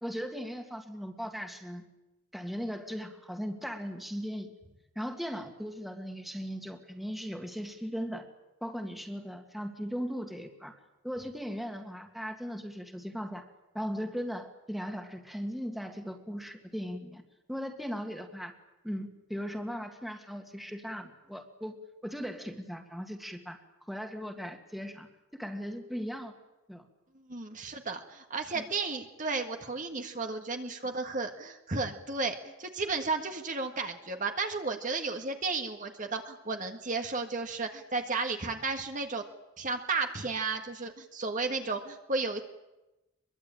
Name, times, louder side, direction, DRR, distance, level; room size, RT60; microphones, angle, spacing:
voice 1, 0.0-1.9 2.3-4.5 5.0-8.3 8.6-10.7 11.0-13.4 13.7-17.2 17.5-18.5 18.8-21.7 22.0-23.6 23.9-26.3 26.7-26.8 28.5-28.7, equal, ahead, 5 dB, 2.0 m, -38 dB
voice 2, 27.3-39.2 39.6-42.4, right 3 dB, 40° right, 5 dB, 1.7 m, -33 dB
24.0 x 23.0 x 8.9 m, 1.0 s
head